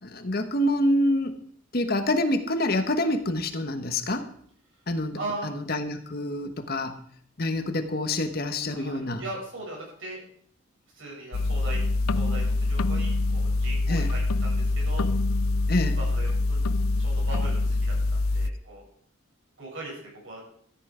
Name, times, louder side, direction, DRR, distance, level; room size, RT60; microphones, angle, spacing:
voice 1, 0.0-1.3 1.7-4.2 4.9-5.2 5.4-6.9 7.4-9.2 13.9-14.1 15.7-16.0, left 1 dB, 45° left, 8 dB, 1.2 m, -26 dB
voice 2, 5.1-5.5 8.7-10.2 10.9-11.8 12.1-15.0 16.0-16.6 17.0-18.8 19.6-20.4, right 2 dB, 70° right, -3 dB, 7.6 m, -39 dB
sound 1, 11.3-18.5, left 2 dB, 85° left, 0.5 m, -25 dB
14.5 x 10.0 x 5.0 m, 0.62 s
head